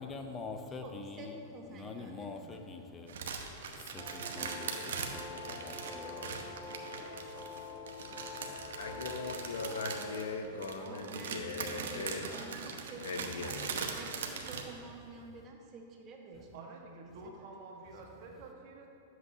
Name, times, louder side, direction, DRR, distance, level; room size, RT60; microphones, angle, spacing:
voice 1, 0.0-9.1, left 4 dB, 20° left, 5 dB, 0.6 m, -47 dB
voice 2, 0.8-2.6 10.9-13.6 13.9-17.1 17.7-17.8 18.2-18.3, right 3 dB, 30° right, 1 dB, 1.2 m, -49 dB
sound 1, 3.1-14.6, right 5 dB, 80° right, 0.9 m, -41 dB
sound 2, 4.0-10.3, left 3 dB, 5° right, 1.2 m, -46 dB
voice 3, 8.8-12.5 13.0-13.9, left 3 dB, 85° left, 4 dB, 0.9 m, -39 dB
voice 4, 10.4-13.0 16.5-18.9, right 3 dB, 55° right, 1 dB, 1.4 m, -51 dB
11.0 x 7.9 x 2.7 m, 2.7 s
hypercardioid pair, 135°, 0 cm